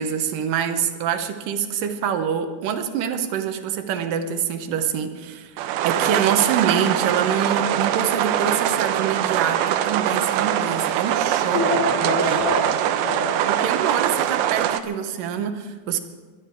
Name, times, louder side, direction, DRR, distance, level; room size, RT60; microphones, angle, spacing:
voice 1, 0.0-11.7 12.0-12.4 13.5-16.0, right 8 dB, 70° right, 8 dB, 2.4 m, -25 dB
sound 1, 5.6-14.8, right 11 dB, 85° right, 2.6 m, -23 dB
voice 2, 11.5-13.6, left 2 dB, 75° left, -3 dB, 6.6 m, -26 dB
23.0 x 11.5 x 4.6 m, 1.4 s
omnidirectional pair, 4.4 m